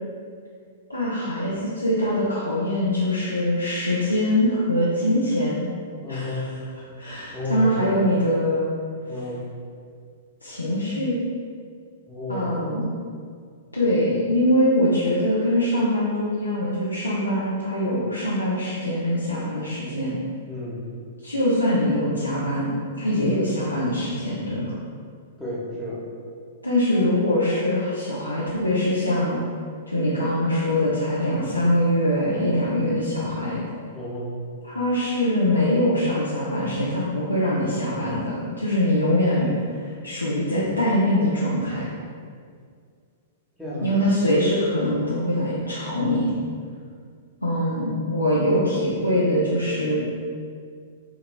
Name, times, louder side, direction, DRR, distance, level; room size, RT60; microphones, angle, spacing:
voice 1, 0.9-5.7 6.1-6.4 7.0-8.7 10.4-11.2 12.3-12.9 13.7-20.2 21.2-22.7 23.0-24.7 26.6-29.4 29.9-33.6 34.6-39.5 40.0-41.9 43.8-46.3 47.4-50.0, left 1 dB, 85° left, -8 dB, 0.6 m, -23 dB
voice 2, 6.0-6.5 7.3-8.0 9.1-9.4 12.1-12.7 20.5-20.8 23.1-23.4 25.4-26.0 33.9-34.3 39.3-39.6 43.6-43.9, left 2 dB, 5° left, -9 dB, 1.0 m, -31 dB
4.6 x 2.9 x 2.2 m, 2.1 s
figure-of-eight pair, 105°, 0 cm